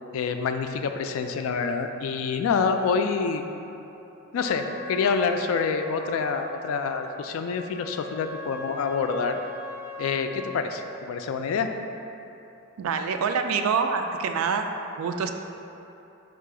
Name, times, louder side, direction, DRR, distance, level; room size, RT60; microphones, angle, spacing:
voice 1, 0.1-3.4 4.3-9.4 10.0-11.7, left 5 dB, 75° left, 7 dB, 0.3 m, -27 dB
Trumpet, 4.4-10.6, left 3 dB, 10° right, 0.4 m, -40 dB
voice 2, 12.8-14.7 15.0-15.3, right 5 dB, 75° right, 6 dB, 0.3 m, -26 dB
4.6 x 2.4 x 4.8 m, 2.9 s
head